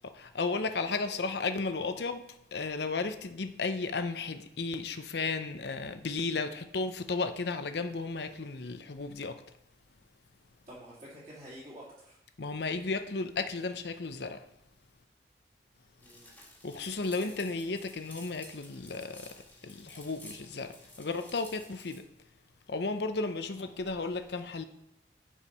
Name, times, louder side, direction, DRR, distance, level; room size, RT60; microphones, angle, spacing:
voice 1, 0.2-2.2 2.5-9.4 12.4-14.4 16.6-19.3 19.6-20.7 21.0-22.0 22.7-24.6, left 3 dB, 70° left, 0.7 m, -34 dB
voice 2, 0.8-1.2 10.7-12.2 16.0-16.3 23.6-24.1, equal, 40° right, 2.9 m, -50 dB
sound 1, 16.0-22.0, left 1 dB, 10° left, 1.7 m, -52 dB
10.0 x 4.7 x 5.5 m
head